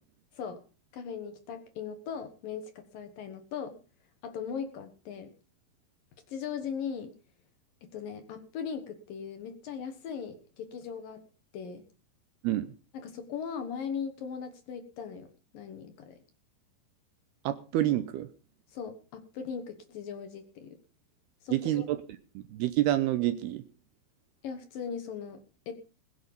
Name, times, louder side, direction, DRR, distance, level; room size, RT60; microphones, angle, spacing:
voice 1, 0.9-3.8 4.2-5.3 6.3-7.1 7.8-11.2 11.5-11.9 12.9-16.2 18.7-20.8 21.4-21.9 24.4-25.7, left 7 dB, 65° left, 8 dB, 2.6 m, -39 dB
voice 2, 17.4-18.3 21.5-22.0 22.5-23.6, right 14 dB, 75° right, 12 dB, 2.5 m, -27 dB
20.5 x 8.8 x 5.3 m, 0.36 s
omnidirectional pair, 5.2 m